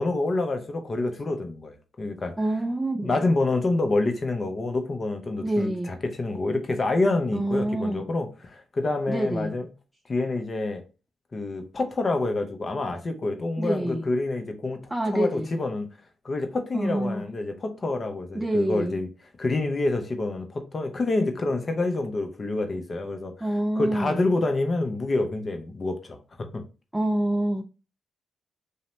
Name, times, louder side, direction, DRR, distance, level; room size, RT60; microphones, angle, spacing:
voice 1, 0.0-2.3 3.0-9.7 10.1-10.8 11.3-14.8 15.1-15.9 16.2-19.1 19.4-23.5 23.8-26.6, left 2 dB, 40° left, 0.6 m, -27 dB
voice 2, 2.4-3.1 5.4-6.0 7.3-8.0 9.1-9.5 13.6-14.0 14.9-15.5 16.7-17.2 18.4-19.0 23.4-24.2 26.9-27.6, right 1 dB, 15° right, 0.3 m, -26 dB
2.7 x 2.1 x 3.0 m
supercardioid pair, 55°, 0 cm